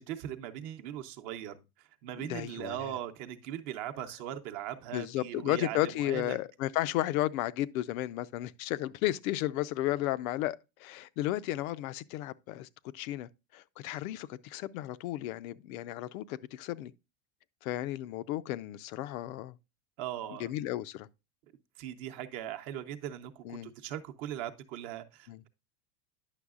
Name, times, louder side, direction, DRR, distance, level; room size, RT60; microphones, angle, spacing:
voice 1, 0.0-1.6 2.0-6.4 20.0-20.5 21.8-25.5, right 11 dB, 50° right, 0.8 m, -39 dB
voice 2, 2.2-2.9 4.9-12.7 12.9-16.9 17.6-19.6 20.4-21.1 23.4-23.7 25.3-25.4, left 15 dB, 85° left, 0.6 m, -33 dB
9.8 x 6.2 x 2.4 m
supercardioid pair, 160°, 41 cm